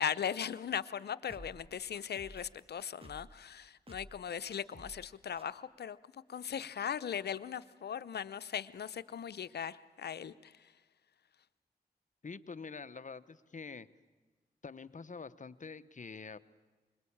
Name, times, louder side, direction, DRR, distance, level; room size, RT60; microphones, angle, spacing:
voice 1, 0.0-10.7, left 8 dB, 75° left, 14 dB, 0.8 m, -39 dB
sound 1, 1.3-3.4 3.9-4.2 4.5-5.1 5.4-5.5, right 1 dB, 35° right, 1.8 m, -53 dB
voice 2, 12.2-13.9 14.6-16.4, left 5 dB, 50° left, 14 dB, 1.0 m, -46 dB
25.0 x 21.5 x 8.7 m, 1.3 s
cardioid pair, 40°, 17 cm